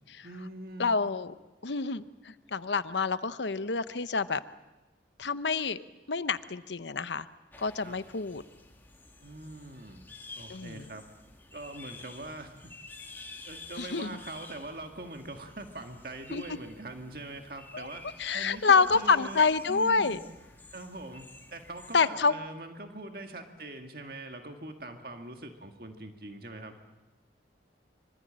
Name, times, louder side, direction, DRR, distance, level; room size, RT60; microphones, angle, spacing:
voice 1, 0.2-0.9 7.8-8.0 9.2-10.1 10.4-11.1 11.5-12.7 13.4-20.2 20.7-26.8, right 2 dB, 55° right, 5 dB, 1.9 m, -43 dB
voice 2, 0.8-1.3 1.6-4.4 5.2-5.8 6.1-7.3 7.6-8.4 10.5-10.8 13.8-14.2 16.3-16.4 17.7-17.9 18.2-20.2 21.9-22.3, left 4 dB, 80° left, 13 dB, 0.9 m, -27 dB
sound 1, 7.5-22.1, left 3 dB, 10° left, 2.4 m, -51 dB
25.0 x 24.5 x 8.8 m, 1.1 s
head